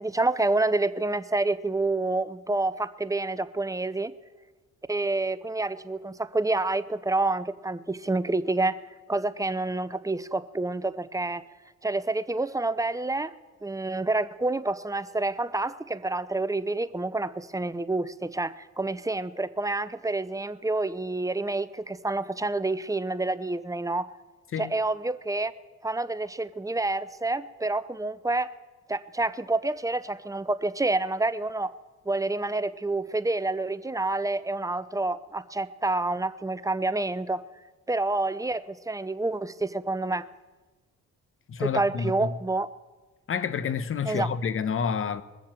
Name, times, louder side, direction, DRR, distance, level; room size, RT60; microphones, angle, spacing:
voice 1, 0.0-4.1 4.9-8.8 9.1-11.4 11.8-13.3 13.6-24.1 24.6-25.5 25.8-28.5 28.9-31.7 32.1-37.4 37.9-40.3 41.6-42.7 44.0-44.3, right 2 dB, 10° right, 0.6 m, -28 dB
voice 2, 41.5-42.3 43.3-45.2, left 6 dB, 45° left, 1.0 m, -29 dB
21.5 x 7.3 x 7.6 m
cardioid pair, 90°, 30 cm